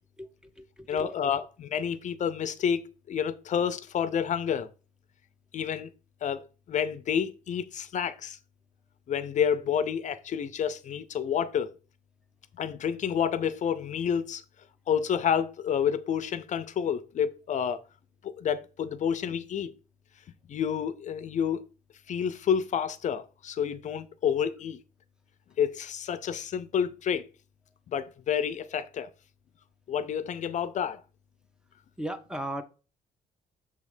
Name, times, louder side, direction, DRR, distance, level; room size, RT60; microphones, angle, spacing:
voice 1, 0.2-1.1 32.0-32.6, right 1 dB, 5° right, 0.6 m, -37 dB
voice 2, 0.9-4.7 5.5-5.9 6.2-8.4 9.1-11.7 12.6-14.4 14.9-17.8 18.2-19.7 20.5-21.6 22.1-24.8 25.6-27.3 27.9-29.1 29.9-31.0, left 8 dB, 55° left, 0.5 m, -29 dB
6.8 x 3.2 x 4.9 m
cardioid pair, 120°, 15 cm